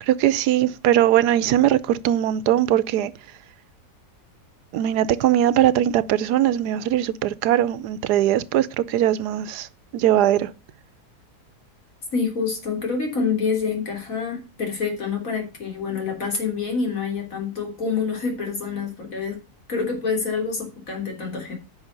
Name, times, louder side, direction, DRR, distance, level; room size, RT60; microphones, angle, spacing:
voice 1, 0.0-3.1 4.7-10.5, right 12 dB, 85° right, 1.2 m, -20 dB
voice 2, 12.1-21.6, left 5 dB, 55° left, 3.6 m, -27 dB
9.0 x 5.8 x 6.6 m
omnidirectional pair, 1.7 m